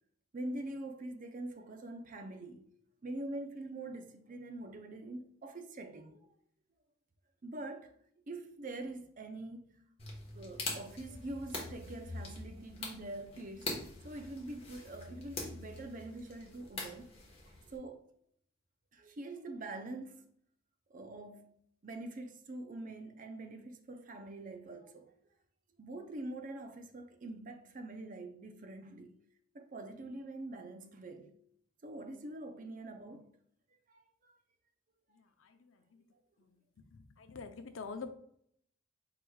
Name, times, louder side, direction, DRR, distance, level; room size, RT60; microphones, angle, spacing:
voice 1, 0.3-2.7 3.0-6.3 7.4-7.9 8.3-9.8 10.3-17.1 17.5-18.1 18.9-20.3 20.9-25.1 25.8-29.2 29.5-31.4 31.8-33.4 33.9-34.3, right 2 dB, 45° right, 0.6 m, -45 dB
sound 1, 10.0-17.8, left 3 dB, 30° left, 1.2 m, -44 dB
voice 2, 36.9-38.1, left 4 dB, 90° left, 0.6 m, -45 dB
4.8 x 4.6 x 2.3 m
head